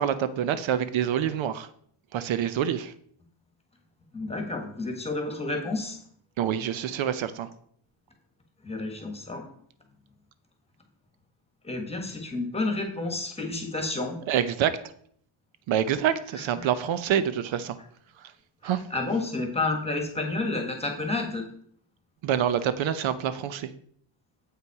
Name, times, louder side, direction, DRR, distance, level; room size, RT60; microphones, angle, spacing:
voice 1, 0.0-1.7 2.1-2.9 6.4-7.5 14.3-14.7 15.7-17.8 18.6-18.8 22.2-23.7, right 9 dB, 70° right, 13 dB, 0.7 m, -26 dB
voice 2, 4.1-6.0 8.6-9.4 11.6-14.2 16.3-16.7 18.6-21.5, left 2 dB, 10° left, 3 dB, 1.3 m, -30 dB
7.8 x 5.6 x 4.7 m, 0.63 s
cardioid pair, 155°, 48 cm